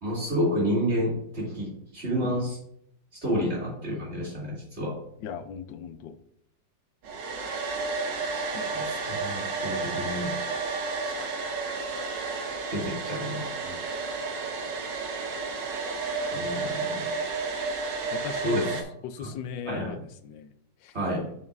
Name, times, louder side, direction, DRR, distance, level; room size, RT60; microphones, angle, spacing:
voice 1, 0.0-2.6 3.1-5.0 8.3-10.3 12.7-13.5 16.3-17.1 18.4-18.8 19.2-19.3 19.6-20.0 20.9-21.3, equal, 35° right, -5 dB, 3.3 m, -30 dB
voice 2, 5.2-6.2 8.5-8.7 10.9-11.3 13.7-13.8 16.4-16.6 18.1-18.7 19.0-20.5 20.8-20.9, left 7 dB, 85° left, 10 dB, 1.3 m, -39 dB
Domestic sounds home sounds, 7.0-18.8, right 4 dB, 75° right, 1.7 m, -31 dB
8.3 x 7.2 x 2.6 m, 0.71 s
omnidirectional pair, 2.0 m